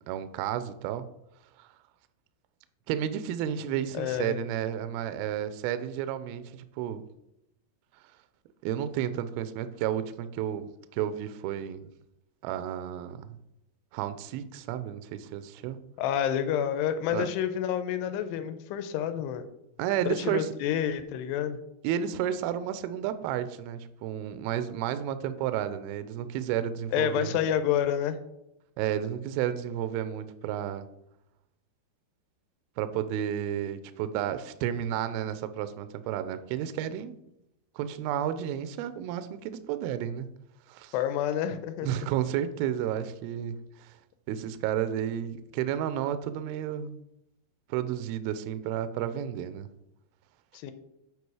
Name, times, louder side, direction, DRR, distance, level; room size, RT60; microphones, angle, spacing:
voice 1, 0.1-1.0 1.6-1.7 2.9-7.0 8.6-11.9 12.4-13.4 13.9-15.8 17.1-17.3 19.8-20.5 21.8-27.4 28.8-30.9 32.8-37.2 37.8-40.3 40.7-40.9 41.8-44.0 44.3-47.0 47.7-49.7, right 10 dB, 85° right, 12 dB, 2.2 m, -32 dB
voice 2, 3.9-4.4 16.0-19.4 20.1-21.6 26.9-28.2 40.9-42.1 50.5-50.7, left 9 dB, 85° left, 10 dB, 2.7 m, -29 dB
8.1 x 4.7 x 4.8 m, 0.84 s
omnidirectional pair, 4.9 m